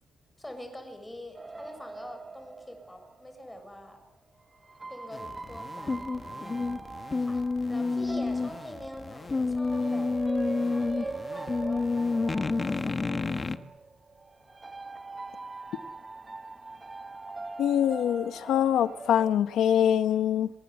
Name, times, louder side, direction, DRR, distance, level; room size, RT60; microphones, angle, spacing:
voice 1, 0.4-4.0 4.9-10.1 10.7-13.4, left 1 dB, 5° left, 7.0 m, -45 dB
sound 1, 1.3-3.9 4.6-19.3, right 3 dB, 15° right, 0.9 m, -42 dB
sound 2, 5.1-13.6, left 3 dB, 20° left, 1.3 m, -30 dB
voice 2, 17.6-20.5, left 9 dB, 80° left, 1.1 m, -24 dB
27.0 x 25.5 x 8.6 m
cardioid pair, 165°, 0 cm